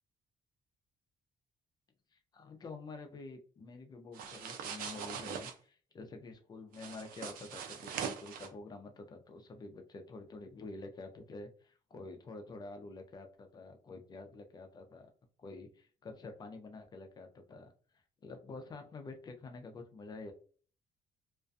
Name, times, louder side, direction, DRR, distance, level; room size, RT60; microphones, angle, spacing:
voice 1, 2.1-15.1 15.4-20.3, left 3 dB, 30° left, 5 dB, 0.4 m, -48 dB
sound 1, 4.1-5.5 6.7-8.5, right 7 dB, 85° right, 0.5 m, -42 dB
2.4 x 2.2 x 2.5 m, 0.40 s
cardioid pair, 165°, 14 cm